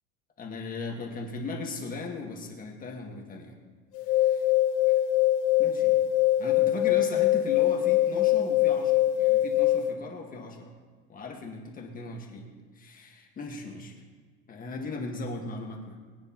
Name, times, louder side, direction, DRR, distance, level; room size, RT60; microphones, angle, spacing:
voice 1, 0.4-3.5 4.2-4.5 4.9-5.0 5.6-6.0 6.4-10.7 11.1-12.5 12.7-13.9 14.5-16.0, left 3 dB, 25° left, 1 dB, 1.6 m, -38 dB
sound 1, 3.9-9.9, left 14 dB, 40° left, 0.5 m, -23 dB
21.5 x 9.6 x 3.0 m, 1.5 s
cardioid pair, 160°, 34 cm